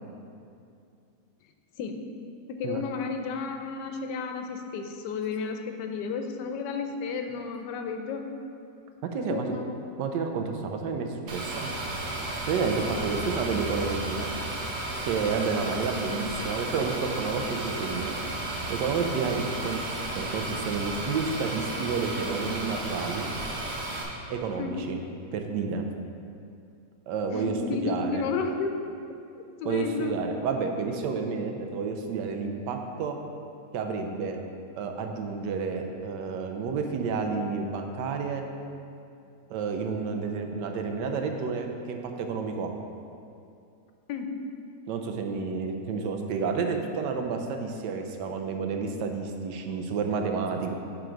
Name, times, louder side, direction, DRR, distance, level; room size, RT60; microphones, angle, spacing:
voice 1, 2.5-8.2 9.2-9.8 24.6-24.8 27.3-28.7 29.6-30.1 44.1-44.3, left 5 dB, 85° left, 5 dB, 1.2 m, -32 dB
voice 2, 9.1-9.5 10.0-11.7 12.4-14.3 15.0-18.2 18.7-23.3 24.3-25.0 25.3-25.8 27.1-27.6 27.8-28.3 29.6-33.2 33.7-34.4 34.8-38.4 39.5-42.7 44.9-50.7, right 5 dB, 85° right, 4 dB, 1.3 m, -30 dB
sound 1, 11.3-24.0, right 2 dB, 55° right, 1.2 m, -33 dB
7.6 x 3.8 x 5.0 m, 2.5 s
omnidirectional pair, 1.8 m